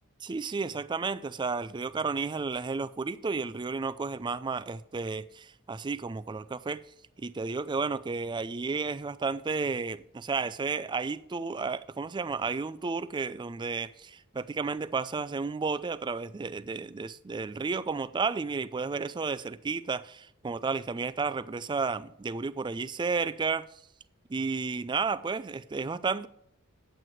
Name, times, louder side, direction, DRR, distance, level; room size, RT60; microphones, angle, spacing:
voice 1, 0.2-6.8 7.2-23.7 24.3-26.3, right 4 dB, 20° right, 0.3 m, -32 dB
9.2 x 8.1 x 4.6 m
head